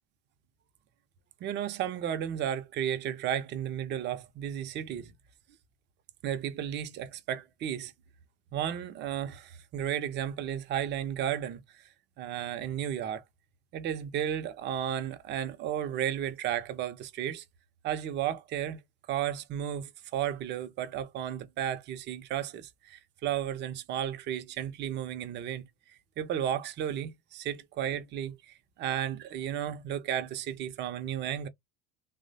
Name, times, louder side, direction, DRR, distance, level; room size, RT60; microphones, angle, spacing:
voice 1, 1.4-5.1 6.2-7.9 8.5-11.8 12.2-13.2 13.7-17.4 17.8-18.8 19.1-25.6 26.2-31.5, right 10 dB, 40° right, 0.6 m, -33 dB
3.0 x 2.1 x 2.6 m
hypercardioid pair, 85°, 29 cm